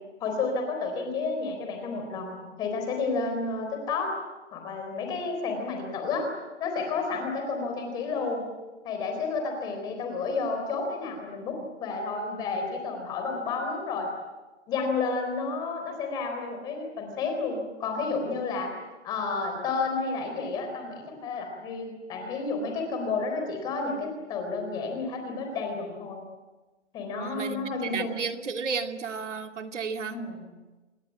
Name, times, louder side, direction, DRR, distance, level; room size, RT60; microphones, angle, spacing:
voice 1, 0.2-4.1 4.5-6.3 6.6-8.4 8.8-14.1 14.7-18.7 19.0-26.2 26.9-28.2 30.1-30.4, left 4 dB, 10° left, 4 dB, 3.9 m, -31 dB
voice 2, 27.1-30.2, right 5 dB, 80° right, 5 dB, 2.7 m, -33 dB
28.0 x 20.0 x 8.6 m, 1.2 s
hypercardioid pair, 180°, 35 cm